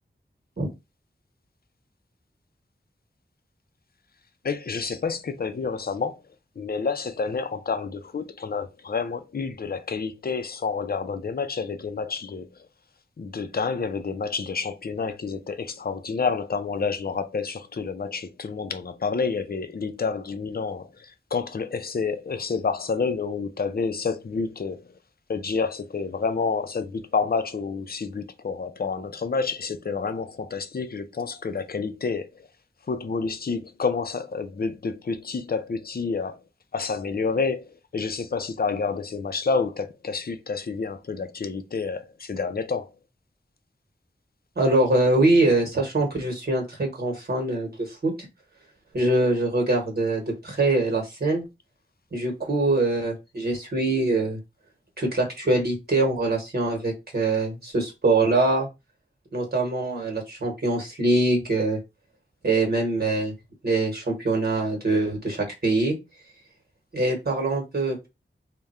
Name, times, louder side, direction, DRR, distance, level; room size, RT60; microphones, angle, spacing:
voice 1, 4.4-6.2 6.6-12.5 13.2-24.8 25.3-32.3 32.9-36.4 36.7-37.6 37.9-42.9, left 5 dB, 50° left, 0.5 m, -29 dB
voice 2, 44.6-48.3 48.9-51.4 52.1-54.4 55.0-58.7 59.3-61.8 62.4-63.3 63.6-66.0 66.9-68.1, right 2 dB, 55° right, 1.2 m, -23 dB
3.6 x 2.2 x 4.1 m
wide cardioid pair, 80°, 20 cm